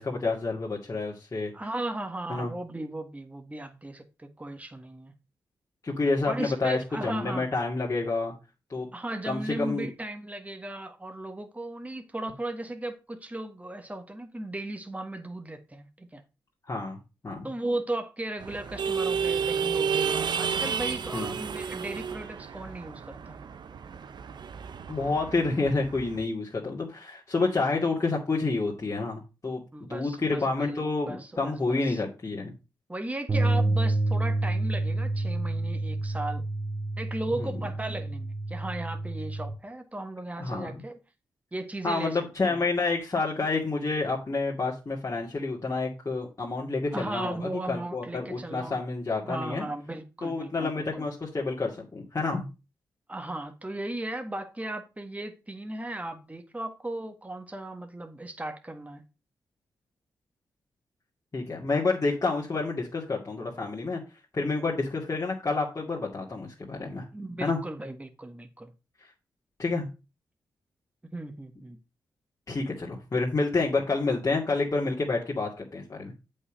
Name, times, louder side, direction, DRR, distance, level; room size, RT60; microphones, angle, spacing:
voice 1, 0.0-1.5 2.3-2.5 5.8-8.3 8.7-8.9 9.2-9.9 16.7-17.0 17.2-17.5 21.1-21.3 24.9-32.5 37.4-37.6 40.4-40.8 41.8-49.7 50.2-52.5 61.3-64.0 64.3-67.0 67.4-67.6 69.6-69.9 72.5-76.1, left 3 dB, 40° left, 2.4 m, -29 dB
voice 2, 1.5-5.1 6.2-7.5 8.9-16.2 17.4-23.4 29.7-32.0 32.9-36.4 37.0-41.0 41.5-42.6 46.9-48.8 49.2-51.1 53.1-59.0 67.1-68.7 71.0-71.8, right 1 dB, 15° right, 1.5 m, -36 dB
sound 1, 18.4-26.2, right 6 dB, 65° right, 0.8 m, -31 dB
sound 2, 33.3-39.5, right 2 dB, 45° right, 2.0 m, -28 dB
8.2 x 5.5 x 5.1 m
supercardioid pair, 40°, 8 cm